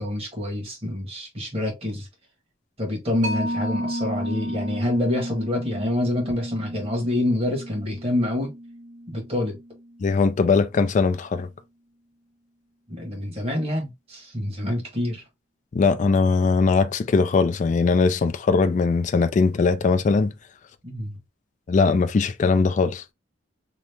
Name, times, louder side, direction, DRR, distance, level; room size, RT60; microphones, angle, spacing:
voice 1, 0.0-2.1 2.8-8.5 9.1-9.6 12.9-15.2 20.8-21.2, left 1 dB, 30° right, 1.2 m, -27 dB
Mallet percussion, 3.2-10.3, equal, 70° right, 0.7 m, -33 dB
voice 2, 10.0-11.5 15.7-20.3 21.7-23.0, left 4 dB, 40° left, 0.3 m, -20 dB
2.9 x 2.0 x 3.3 m
head